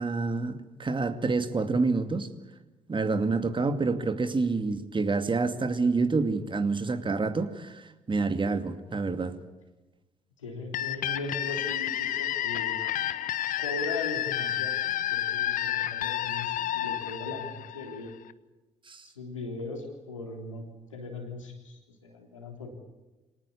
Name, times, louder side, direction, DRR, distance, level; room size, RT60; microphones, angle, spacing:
voice 1, 0.0-2.3 2.9-9.3 18.9-19.0, right 3 dB, 30° right, 9 dB, 2.5 m, -28 dB
voice 2, 10.4-12.8 13.6-18.1 19.0-20.6 20.9-22.7, left 3 dB, 90° left, 2 dB, 3.5 m, -39 dB
sound 1, 10.7-18.3, left 12 dB, 60° left, 1.0 m, -30 dB
25.5 x 18.5 x 8.6 m, 1.1 s
figure-of-eight pair, 45°, 16 cm